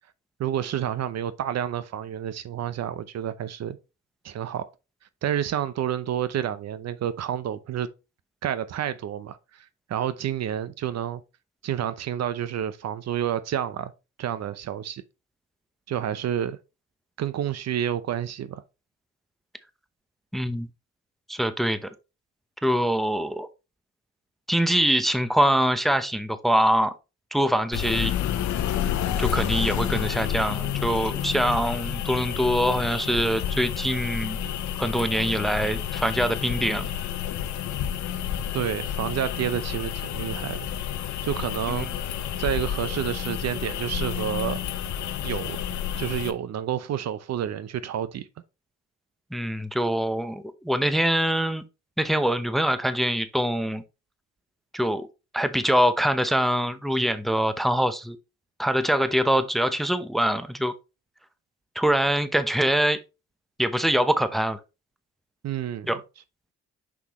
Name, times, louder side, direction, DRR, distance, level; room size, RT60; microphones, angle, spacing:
voice 1, 0.4-3.8 4.2-4.7 5.2-7.9 8.4-11.2 11.6-13.9 14.2-15.0 15.9-16.6 17.2-18.6 38.5-40.7 41.2-42.1 42.4-44.7 45.2-45.6 46.0-48.3 65.4-65.9, right 10 dB, 60° right, 0.7 m, -29 dB
voice 2, 20.3-20.7 21.3-21.9 22.6-23.5 24.5-26.9 27.3-28.1 29.2-34.4 34.8-36.9 41.8-41.9 49.3-51.6 52.0-53.8 54.7-55.1 55.3-58.2 58.6-60.7 61.8-63.0 63.6-64.6 65.9-66.0, equal, ahead, 0.7 m, -24 dB
sound 1, 27.7-46.3, left 10 dB, 70° left, 0.8 m, -30 dB
6.1 x 5.8 x 3.0 m
cardioid pair, 90°, 30 cm